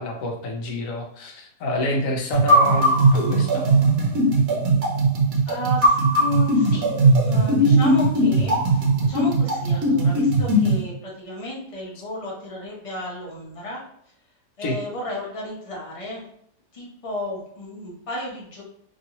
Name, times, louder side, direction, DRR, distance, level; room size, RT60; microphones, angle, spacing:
voice 1, 0.0-3.7 14.6-14.8, left 1 dB, 65° left, 2 dB, 0.9 m, -28 dB
sound 1, 2.3-10.8, right 2 dB, 65° right, 1.1 m, -19 dB
voice 2, 5.5-7.0 7.2-13.8 14.6-16.2 16.7-18.6, left 1 dB, 45° left, -4 dB, 0.4 m, -33 dB
3.0 x 2.6 x 2.8 m, 0.68 s
omnidirectional pair, 1.8 m